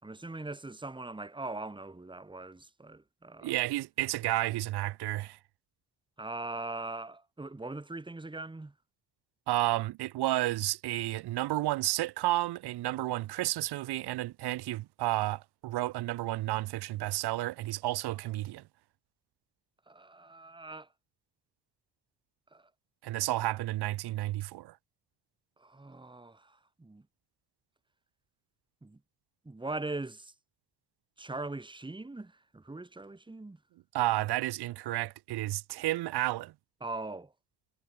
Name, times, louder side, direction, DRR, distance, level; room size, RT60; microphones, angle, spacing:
voice 1, 0.0-3.6 6.2-8.7 19.9-20.9 22.5-22.7 25.6-27.0 28.8-29.0 29.4-30.3 31.2-33.6 36.8-37.3, right 2 dB, 10° right, 2.5 m, -41 dB
voice 2, 3.4-5.4 9.5-18.6 23.0-24.7 33.9-36.5, right 16 dB, 85° right, 1.7 m, -31 dB
cardioid pair, 100°, 38 cm